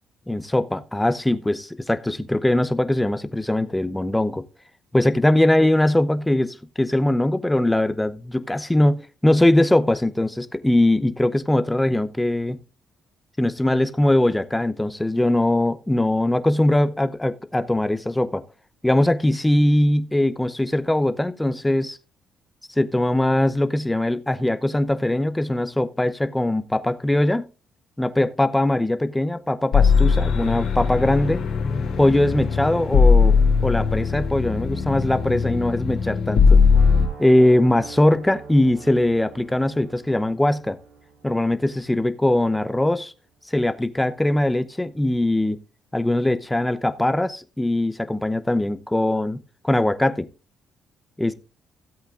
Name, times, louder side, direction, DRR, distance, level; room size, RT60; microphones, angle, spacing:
voice 1, 0.3-4.4 4.9-12.6 13.4-18.4 18.8-22.0 22.8-27.5 28.0-31.4 32.0-36.6 37.2-40.8 41.2-43.1 43.5-45.6 45.9-49.4 49.6-50.3 51.2-51.3, left 1 dB, 10° left, 0.7 m, -21 dB
sound 1, 29.7-37.1, left 5 dB, 80° left, 2.8 m, -19 dB
sound 2, 36.7-42.6, right 4 dB, 90° right, 6.6 m, -44 dB
16.5 x 8.1 x 2.5 m
cardioid pair, 120°, 0 cm